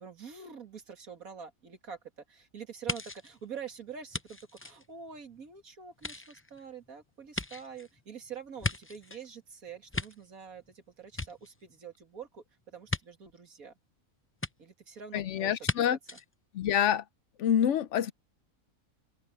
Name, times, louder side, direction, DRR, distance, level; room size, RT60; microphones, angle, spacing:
voice 1, 0.0-2.0 2.3-13.7 14.6-16.2, right 6 dB, 90° right, 2.7 m, -46 dB
sound 1, 2.9-5.5 5.9-9.3 9.7-10.7 11.0-12.0 12.9-13.0 14.4-14.5 15.6-15.8 16.1-16.2, left 2 dB, 20° left, 0.4 m, -37 dB
voice 2, 15.1-16.0 16.5-17.0 17.4-18.1, left 9 dB, 65° left, 0.9 m, -27 dB
omnidirectional pair, 1.4 m